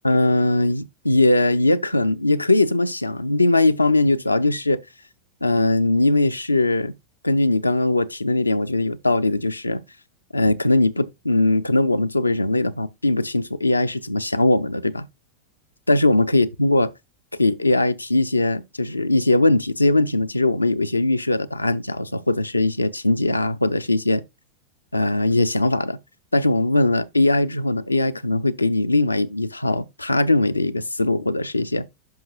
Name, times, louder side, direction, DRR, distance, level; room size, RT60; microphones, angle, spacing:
voice 1, 0.0-4.8 5.4-6.9 7.2-9.8 10.3-15.1 15.9-16.9 17.4-24.2 24.9-26.0 26.3-31.9, left 2 dB, 85° left, 0.4 m, -20 dB
10.5 x 5.8 x 2.3 m
figure-of-eight pair, 90°, 0 cm